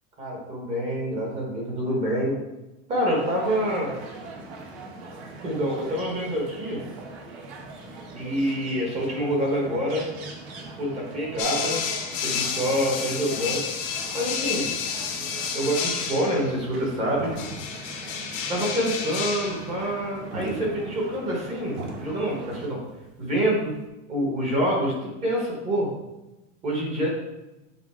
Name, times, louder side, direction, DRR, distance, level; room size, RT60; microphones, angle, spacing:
voice 1, 0.2-2.4 2.9-3.9 5.4-6.8 8.1-10.1 10.8-11.8 12.2-13.6 14.1-14.7 15.5-17.3 18.5-22.8 23.2-23.7 24.1-25.9 26.6-27.1, equal, 15° right, -2 dB, 1.1 m, -26 dB
sound 1, 3.1-22.7, right 2 dB, 60° right, 1.3 m, -41 dB
sound 2, 11.4-16.5 17.4-19.7, left 6 dB, 20° left, 0.4 m, -30 dB
sound 3, 16.4-23.9, right 4 dB, 75° right, 1.5 m, -39 dB
7.2 x 3.8 x 4.3 m, 1.0 s
supercardioid pair, 180°, 38 cm